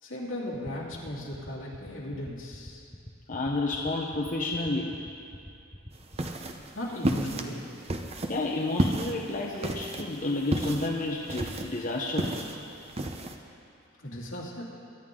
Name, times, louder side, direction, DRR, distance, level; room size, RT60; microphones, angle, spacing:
voice 1, 0.0-2.8 6.7-7.6 14.0-14.6, left 1 dB, 70° left, -5 dB, 2.8 m, -36 dB
sound 1, 0.5-6.5, left 1 dB, 10° left, 0.7 m, -44 dB
voice 2, 3.3-4.9 8.3-12.4, left 2 dB, 40° left, -2 dB, 0.9 m, -30 dB
sound 2, 5.9-13.3, right 1 dB, 30° right, 0.7 m, -32 dB
22.5 x 11.0 x 3.8 m, 2.5 s
head